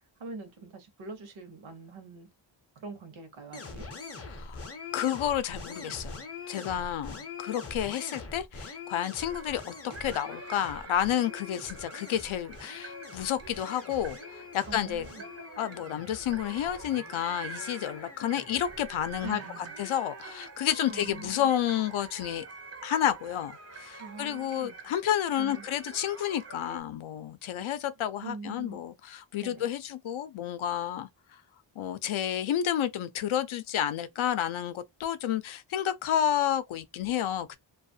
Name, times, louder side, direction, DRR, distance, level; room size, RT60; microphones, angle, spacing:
voice 1, 0.2-2.3 2.8-3.9 14.7-15.2 19.2-19.7 20.9-21.5 24.0-24.8 25.4-25.6 28.2-28.8 29.4-29.7, right 3 dB, 75° right, 0.8 m, -43 dB
sound 1, 3.5-20.5, left 4 dB, 30° left, 0.5 m, -44 dB
voice 2, 4.9-6.2 6.5-15.1 15.6-19.4 19.8-22.4 22.8-31.1 31.8-37.6, left 10 dB, 80° left, 0.5 m, -30 dB
sound 2, 9.2-26.8, right 4 dB, 35° right, 0.4 m, -46 dB
2.4 x 2.3 x 2.6 m
wide cardioid pair, 155°, 48 cm